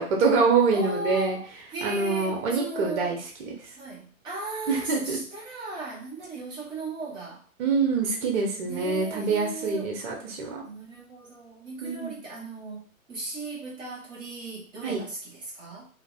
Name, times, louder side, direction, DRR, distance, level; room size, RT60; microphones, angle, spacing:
voice 1, 0.0-1.4 1.8-3.6 4.7-5.2 7.6-10.6 11.8-12.1 14.8-15.0, right 4 dB, 55° right, 0 dB, 1.0 m, -25 dB
voice 2, 0.7-3.2 3.7-7.4 8.7-9.9 10.6-15.9, right 2 dB, 10° right, -6 dB, 0.7 m, -37 dB
3.5 x 2.0 x 2.3 m, 0.43 s
hypercardioid pair, 140°, 43 cm